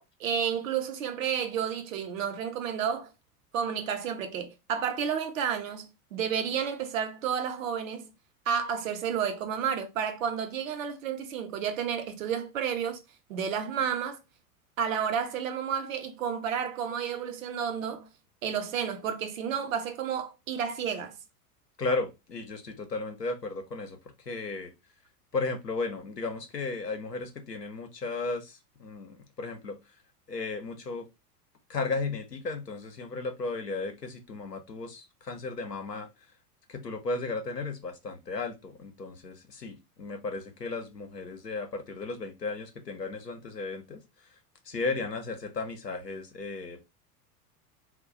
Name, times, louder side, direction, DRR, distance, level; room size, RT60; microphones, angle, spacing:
voice 1, 0.0-3.1 3.5-8.1 8.5-13.0 13.3-14.2 14.8-18.1 18.4-21.2, right 7 dB, 55° right, 0.8 m, -31 dB
voice 2, 21.8-24.0 24.3-24.7 25.3-29.8 30.3-31.1 31.7-36.1 36.7-44.0 44.7-46.8, left 3 dB, 90° left, 0.8 m, -35 dB
2.3 x 2.2 x 3.8 m
figure-of-eight pair, 85°, 47 cm